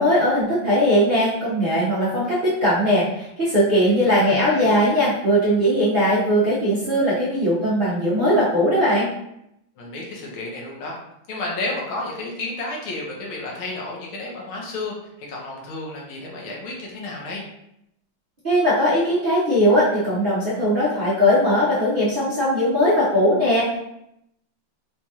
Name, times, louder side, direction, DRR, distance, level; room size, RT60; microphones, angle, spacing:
voice 1, 0.0-9.1 18.4-23.8, equal, 70° right, -10 dB, 0.5 m, -19 dB
voice 2, 3.9-4.7 9.8-11.0 11.3-17.4, left 2 dB, 85° left, -2 dB, 1.7 m, -32 dB
4.6 x 2.3 x 2.7 m, 0.79 s
omnidirectional pair, 2.2 m